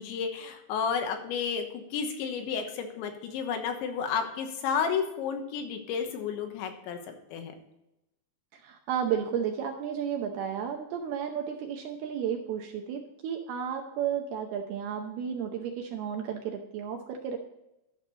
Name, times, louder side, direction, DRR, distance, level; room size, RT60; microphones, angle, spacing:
voice 1, 0.0-7.5, left 6 dB, 80° left, 5 dB, 3.4 m, -32 dB
voice 2, 8.6-17.4, right 8 dB, 75° right, 3 dB, 2.4 m, -33 dB
12.0 x 6.5 x 3.9 m, 0.89 s
omnidirectional pair, 5.3 m